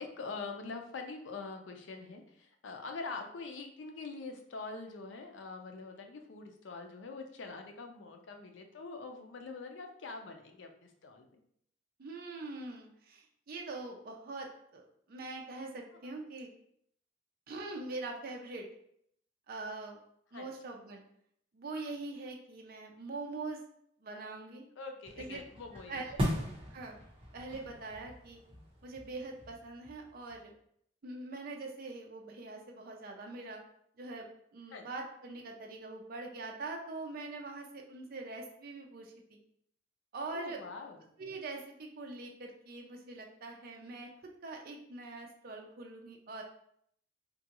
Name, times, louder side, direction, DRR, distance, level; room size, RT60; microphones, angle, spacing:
voice 1, 0.0-11.4 16.0-16.2 20.3-20.5 24.8-26.2 34.7-34.9 40.3-41.0, left 4 dB, 80° left, 4 dB, 0.5 m, -44 dB
voice 2, 12.0-16.5 17.5-18.7 19.5-20.0 20.3-21.0 21.5-23.6 24.0-24.7 25.2-25.4 25.9-26.1 26.7-27.0 27.3-28.4 28.8-30.5 31.0-33.6 34.0-34.3 34.5-39.4 40.1-40.6 41.2-44.1 44.4-46.4, right 3 dB, 50° right, 1 dB, 0.4 m, -43 dB
sound 1, 25.1-30.4, equal, 30° right, 0.9 m, -39 dB
3.6 x 2.3 x 2.9 m, 0.69 s
head